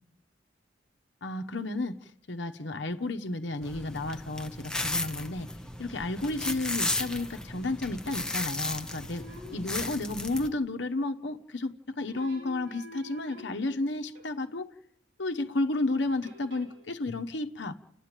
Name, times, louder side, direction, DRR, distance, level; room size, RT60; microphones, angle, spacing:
voice 1, 1.2-5.5 5.8-9.2 9.5-14.7 15.2-17.7, left 2 dB, 65° left, 1.1 m, -32 dB
sound 1, 3.6-10.5, left 2 dB, 5° left, 0.9 m, -35 dB
sound 2, 6.4-7.7 8.1-8.7 9.0-10.4 12.1-14.5 16.2-16.9, left 1 dB, 75° right, 3.4 m, -50 dB
29.5 x 11.0 x 9.1 m
head